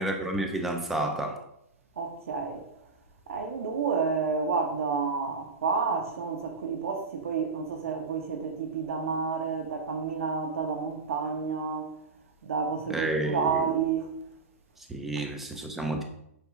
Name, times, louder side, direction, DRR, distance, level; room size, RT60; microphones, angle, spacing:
voice 1, 0.0-1.4 12.9-13.7 14.9-16.0, right 2 dB, 5° right, 0.4 m, -30 dB
voice 2, 2.0-2.6 3.3-11.9 12.4-14.1, right 5 dB, 75° right, 1.2 m, -30 dB
8.3 x 3.1 x 3.6 m
hypercardioid pair, 180°, 7 cm